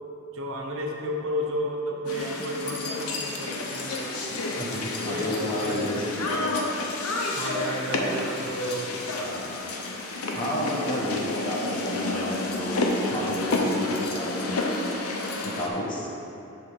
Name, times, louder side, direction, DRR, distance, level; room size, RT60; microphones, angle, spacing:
voice 1, 0.3-4.4 5.0-5.9 7.3-9.0, equal, 65° right, 1 dB, 0.9 m, -32 dB
sound 1, 2.1-15.7, left 2 dB, 85° left, 0.8 m, -30 dB
voice 2, 4.6-6.5 9.1-9.5 10.3-14.8 15.4-16.1, left 1 dB, 20° left, -5 dB, 1.2 m, -31 dB
7.7 x 3.5 x 6.3 m, 2.9 s
head